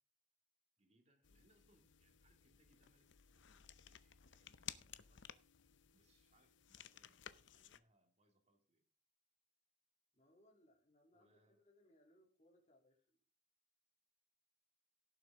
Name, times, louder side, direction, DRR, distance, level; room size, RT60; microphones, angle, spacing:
voice 1, 0.8-5.3 5.9-7.3 7.5-8.8 11.1-11.6, right 1 dB, 35° right, 4 dB, 2.5 m, -77 dB
sound 1, 1.2-7.8, left 10 dB, 70° left, 0.7 m, -57 dB
voice 2, 10.1-13.2, left 1 dB, 35° left, 1 dB, 3.2 m, -71 dB
17.0 x 7.6 x 3.7 m, 0.39 s
head